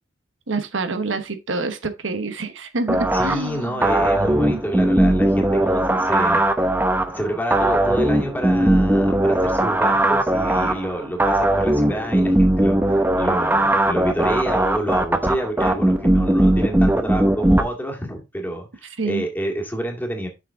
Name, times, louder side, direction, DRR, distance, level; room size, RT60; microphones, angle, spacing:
voice 1, 0.5-3.8 4.5-4.6 19.0-19.2, right 3 dB, 85° right, 1.1 m, -27 dB
sound 1, 2.9-17.6, right 1 dB, 10° right, 0.8 m, -19 dB
voice 2, 3.1-6.7 7.1-20.3, equal, 10° left, 2.1 m, -28 dB
7.3 x 6.1 x 3.6 m
head